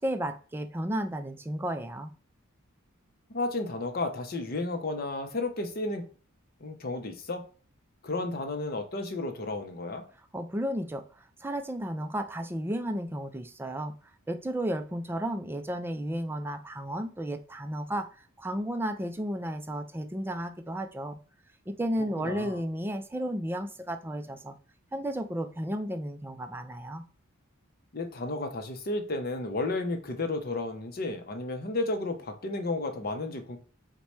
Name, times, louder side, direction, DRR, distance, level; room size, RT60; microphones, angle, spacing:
voice 1, 0.0-2.1 10.3-11.0 11.4-14.0 14.3-18.1 18.4-21.2 21.7-24.5 24.9-27.0, right 1 dB, 10° right, 7 dB, 0.4 m, -33 dB
voice 2, 3.3-6.0 6.6-7.4 8.0-10.0 22.2-22.6 27.9-33.6, left 2 dB, 45° left, 6 dB, 0.7 m, -32 dB
4.6 x 2.2 x 4.1 m, 0.39 s
head